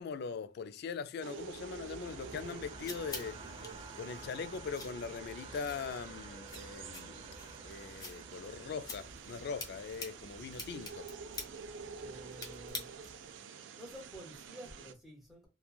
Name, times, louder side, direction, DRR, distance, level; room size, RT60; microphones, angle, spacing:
voice 1, 0.0-3.4 4.0-7.3 7.6-11.1, left 5 dB, 60° left, 0.3 m, -41 dB
sound 1, 1.2-14.9, right 6 dB, 80° right, 0.4 m, -49 dB
Race car auto racing, 1.4-12.7, right 1 dB, 30° right, 0.6 m, -52 dB
sound 2, 2.3-13.3, left 3 dB, 20° left, 0.7 m, -49 dB
voice 2, 12.0-13.0 13.7-15.5, equal, ahead, 1.0 m, -51 dB
3.0 x 2.2 x 2.2 m
head